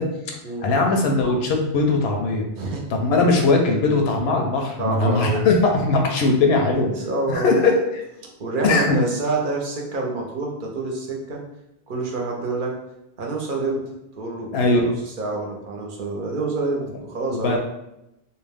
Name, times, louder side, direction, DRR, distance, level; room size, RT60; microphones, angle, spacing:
voice 1, 0.0-0.4 0.6-2.5 2.9-6.9 7.3-8.0 8.6-9.0 14.5-14.9 17.3-17.6, left 3 dB, 75° left, 2 dB, 0.8 m, -20 dB
voice 2, 4.8-5.5 6.8-7.7 8.4-11.4 11.9-12.7 13.2-13.8 14.1-16.8 17.1-17.6, right 3 dB, 55° right, -1 dB, 0.8 m, -27 dB
2.5 x 2.2 x 3.3 m, 0.87 s
omnidirectional pair, 1.1 m